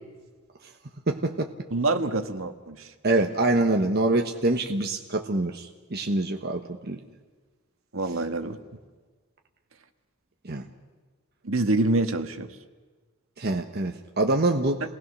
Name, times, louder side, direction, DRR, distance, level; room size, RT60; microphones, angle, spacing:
voice 1, 1.1-1.5 3.0-7.0 10.4-10.7 13.4-14.8, right 2 dB, 50° right, 3 dB, 1.3 m, -25 dB
voice 2, 1.7-2.9 7.9-8.6 11.4-12.5, right 2 dB, 80° right, 7 dB, 1.6 m, -26 dB
29.0 x 19.5 x 6.4 m, 1.4 s
head